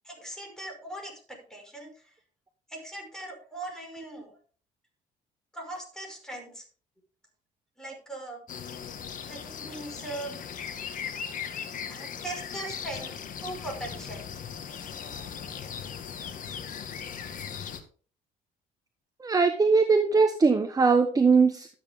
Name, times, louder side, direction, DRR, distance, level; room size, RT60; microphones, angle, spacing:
voice 1, 0.0-2.1 2.7-4.4 5.5-6.7 7.8-8.4 9.2-10.4 11.9-14.3, right 2 dB, 5° left, 1 dB, 5.5 m, -40 dB
sound 1, 8.5-17.8, left 7 dB, 50° left, 1.8 m, -38 dB
voice 2, 19.2-21.7, right 4 dB, 20° right, 7 dB, 1.1 m, -21 dB
12.5 x 8.4 x 3.6 m, 0.39 s
cardioid pair, 110°, 17 cm